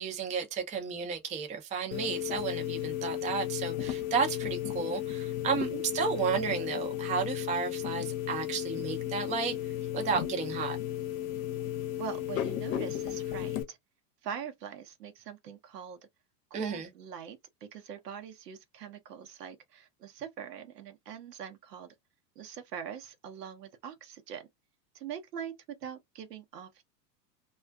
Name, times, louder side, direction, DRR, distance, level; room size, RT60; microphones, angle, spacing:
voice 1, 0.0-9.5 9.9-10.8 16.5-16.9, right 6 dB, 15° right, 0.5 m, -32 dB
sound 1, 1.9-13.6, left 12 dB, 55° left, 0.7 m, -34 dB
voice 2, 12.0-13.8 14.2-16.0 16.5-21.9 22.4-24.5 24.9-25.5 25.8-26.8, right 8 dB, 75° right, 0.8 m, -43 dB
2.4 x 2.3 x 2.2 m
hypercardioid pair, 95°, 48 cm